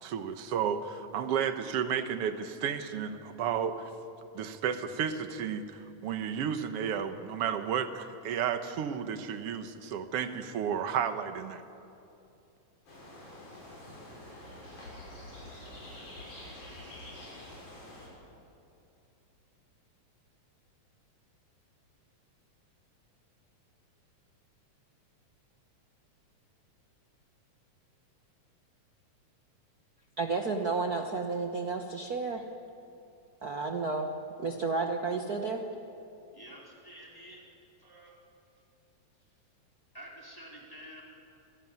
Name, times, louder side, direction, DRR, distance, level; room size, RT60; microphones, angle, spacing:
voice 1, 0.0-3.9 4.3-11.6, right 8 dB, 60° right, 8 dB, 1.9 m, -32 dB
sound 1, 12.9-18.1, left 1 dB, 70° left, 8.0 m, -47 dB
voice 2, 30.2-32.4 33.4-34.1 34.4-35.6, right 4 dB, 75° right, 3 dB, 0.8 m, -31 dB
voice 3, 36.3-37.5 37.8-38.2 39.9-41.0, equal, 5° left, -4 dB, 4.4 m, -49 dB
27.0 x 15.0 x 9.5 m, 2.7 s
omnidirectional pair, 3.5 m